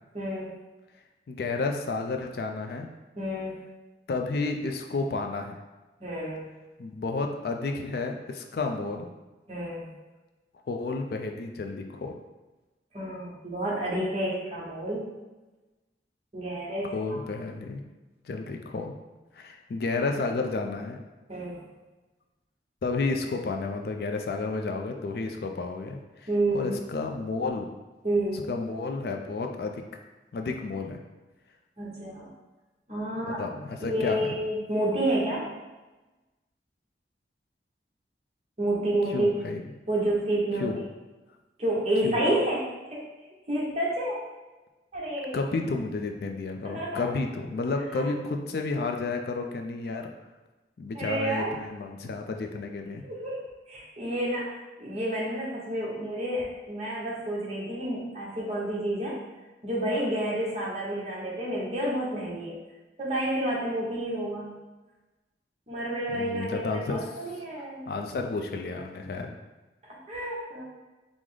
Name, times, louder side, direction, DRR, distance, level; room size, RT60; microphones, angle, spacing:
voice 1, 0.1-0.5 3.2-3.6 6.0-6.5 9.5-9.9 12.9-15.1 16.3-17.2 21.3-21.6 26.3-26.7 28.0-28.5 31.8-32.3 32.9-33.4 33.8-35.5 38.6-39.3 39.9-40.7 41.6-43.0 43.5-44.2 44.9-45.4 46.6-47.1 47.9-48.1 50.9-51.5 53.0-59.2 59.6-62.5 63.0-64.5 65.7-67.9 69.9-70.6, right 1 dB, 35° right, -5 dB, 0.9 m, -30 dB
voice 2, 1.3-2.9 4.1-5.6 6.8-9.1 10.7-12.2 16.9-17.8 18.2-18.9 19.3-21.0 22.8-26.3 26.5-27.7 28.3-29.8 30.3-31.0 33.2-34.3 39.1-39.6 40.6-40.8 42.0-42.2 45.3-50.1 50.8-53.0 66.1-67.1 67.9-69.4, left 3 dB, 60° left, 4 dB, 0.3 m, -31 dB
4.6 x 2.0 x 3.8 m, 1.1 s
head